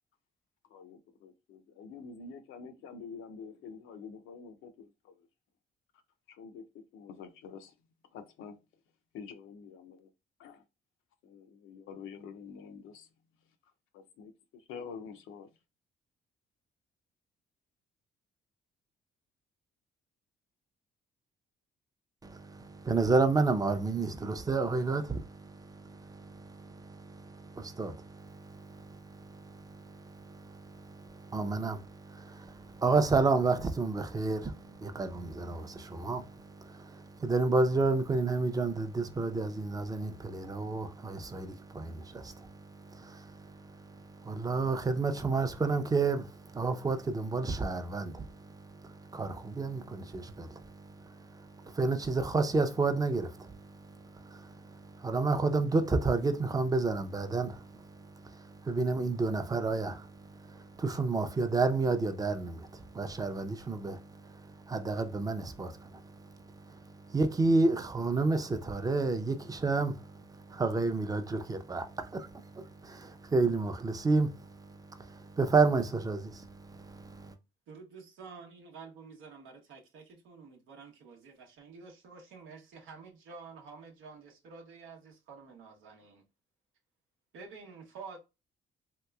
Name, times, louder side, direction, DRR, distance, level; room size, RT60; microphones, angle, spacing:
voice 1, 0.7-5.3 6.3-7.7 8.1-8.6 9.1-10.1 10.4-10.6 11.2-13.1 13.9-15.5, left 5 dB, 85° left, 0.6 m, -47 dB
voice 2, 22.2-77.3, right 3 dB, 20° right, 0.5 m, -31 dB
voice 3, 77.7-86.2 87.3-88.2, right 5 dB, 90° right, 0.8 m, -49 dB
3.2 x 2.9 x 2.3 m
cardioid pair, 90°, 20 cm